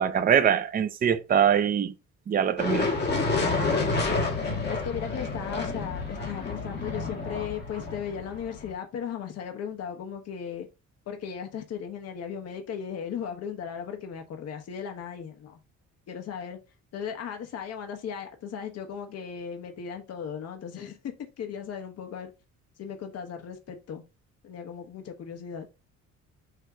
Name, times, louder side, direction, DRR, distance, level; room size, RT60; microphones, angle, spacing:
voice 1, 0.0-1.9 2.3-2.9, right 8 dB, 30° right, 0.6 m, -23 dB
sound 1, 2.6-8.7, left 3 dB, 35° left, 1.8 m, -29 dB
voice 2, 3.7-10.7 11.1-15.6 16.1-16.6 16.9-22.3 22.8-24.0 24.4-25.7, left 7 dB, 55° left, 1.3 m, -37 dB
6.5 x 3.0 x 4.9 m
cardioid pair, 165°, 31 cm